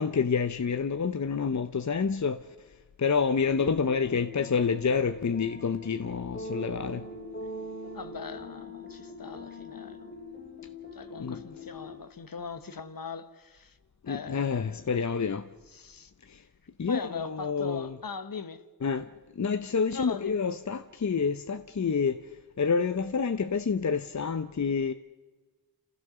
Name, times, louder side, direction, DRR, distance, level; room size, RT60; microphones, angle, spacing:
voice 1, 0.0-2.7 3.0-7.1 11.2-11.4 14.0-15.5 16.3-16.4 16.8-18.0 18.8-22.3 22.6-24.9, left 5 dB, 50° left, 0.8 m, -28 dB
sound 1, 3.4-12.0, left 2 dB, 25° left, 2.7 m, -42 dB
voice 2, 7.9-10.1 10.9-13.7 14.0-14.9 15.7-16.1 16.9-18.6 19.9-20.4, left 5 dB, 65° left, 1.3 m, -40 dB
28.5 x 15.5 x 6.8 m
wide cardioid pair, 70°, 37 cm